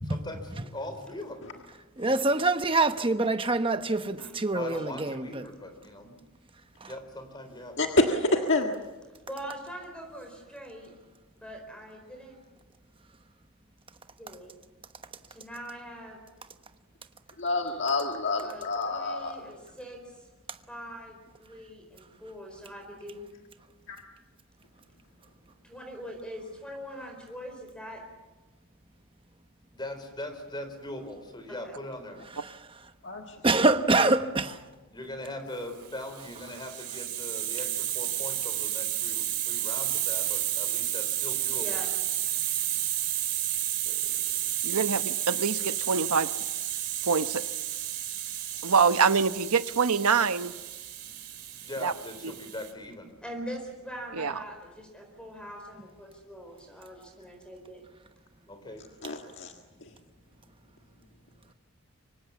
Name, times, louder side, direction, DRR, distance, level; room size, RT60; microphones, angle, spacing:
voice 1, 0.0-1.4 4.5-6.2 6.9-7.9 29.7-32.2 34.9-41.8 51.6-53.1 58.5-58.8, left 1 dB, 20° left, 3.9 m, -40 dB
voice 2, 2.0-5.4 6.8-6.9 32.4-32.6 33.4-34.6, right 2 dB, 25° right, 1.1 m, -25 dB
voice 3, 7.8-8.7 17.4-19.4 23.9-24.0 33.0-33.4 59.0-59.5 59.8-59.9, left 2 dB, 55° left, 1.7 m, -28 dB
voice 4, 9.3-10.9 11.4-12.4 14.2-14.5 15.3-16.2 18.4-20.0 20.7-23.3 25.6-28.0 31.5-31.8 41.5-41.9 53.2-57.8 58.4-58.6, equal, 5° left, 4.5 m, -42 dB
Hiss, 36.1-52.7, right 13 dB, 50° right, 3.4 m, -32 dB
voice 5, 44.6-46.3 47.0-47.4 48.6-50.5 51.8-51.9 54.1-54.4, right 5 dB, 85° right, 1.0 m, -25 dB
25.0 x 24.5 x 7.2 m
head